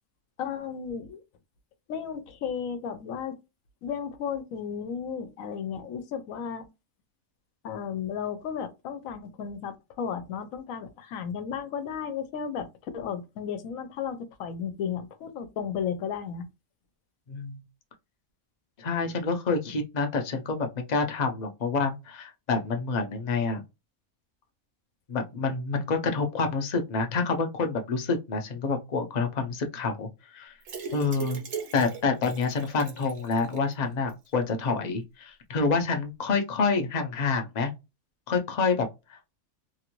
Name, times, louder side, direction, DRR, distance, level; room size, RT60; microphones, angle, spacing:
voice 1, 0.4-1.2 1.9-3.4 3.8-6.7 7.6-12.7 12.9-16.5, left 7 dB, 75° left, 1.1 m, -34 dB
voice 2, 17.3-17.6 18.8-23.6 25.1-30.6 30.9-31.4 31.7-37.7 38.3-39.3, left 4 dB, 45° left, 0.6 m, -28 dB
sound 1, 30.6-33.7 34.1-34.2 34.5-34.6, right 6 dB, 65° right, 1.3 m, -39 dB
2.9 x 2.5 x 2.9 m
omnidirectional pair, 1.4 m